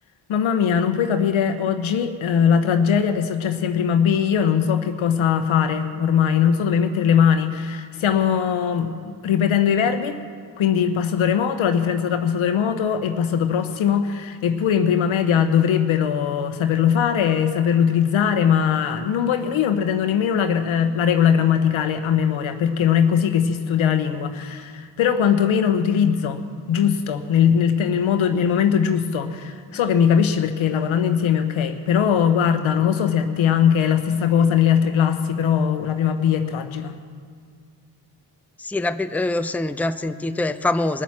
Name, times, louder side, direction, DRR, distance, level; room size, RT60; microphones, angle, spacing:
voice 1, 0.3-10.2 10.6-37.0, left 8 dB, 80° left, 8 dB, 1.0 m, -20 dB
voice 2, 38.6-41.0, left 2 dB, 5° left, 10 dB, 0.6 m, -24 dB
19.5 x 7.3 x 7.5 m, 2.1 s
supercardioid pair, 40°, 47 cm